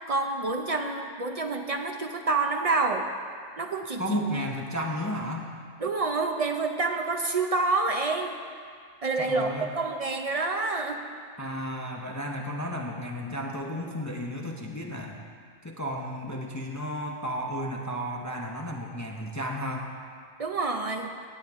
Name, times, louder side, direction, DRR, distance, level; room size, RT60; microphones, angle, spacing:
voice 1, 0.1-3.1 3.6-4.2 5.8-8.4 9.0-11.0 20.4-21.1, right 3 dB, 50° right, 4 dB, 0.4 m, -28 dB
voice 2, 4.0-5.5 9.2-9.7 11.4-15.2 15.6-19.9, equal, 20° left, 0 dB, 0.6 m, -33 dB
17.5 x 8.6 x 3.6 m, 2.1 s
omnidirectional pair, 1.3 m